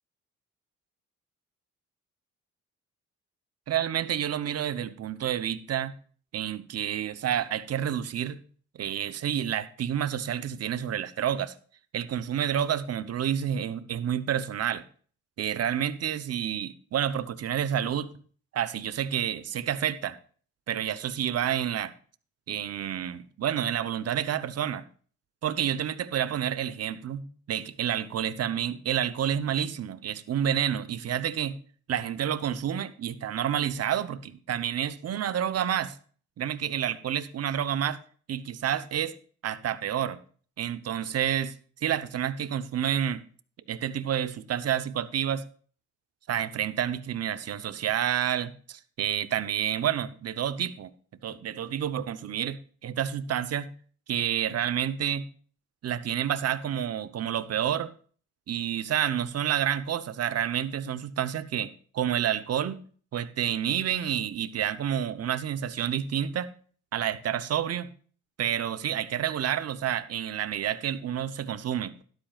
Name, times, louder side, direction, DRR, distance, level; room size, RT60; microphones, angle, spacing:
voice 1, 3.7-5.9 6.3-8.4 8.7-11.5 11.9-14.8 15.4-18.1 18.5-20.2 20.7-21.9 22.5-24.8 25.4-31.6 31.9-36.0 36.4-38.0 38.3-39.2 39.4-40.2 40.6-41.5 41.8-43.2 43.7-45.4 46.3-50.9 51.2-53.7 54.1-55.3 55.8-57.9 58.5-62.8 63.1-66.5 66.9-67.9 68.4-71.9, right 9 dB, 55° right, 0.9 m, -29 dB
12.5 x 12.0 x 2.4 m
cardioid pair, 90°, 30 cm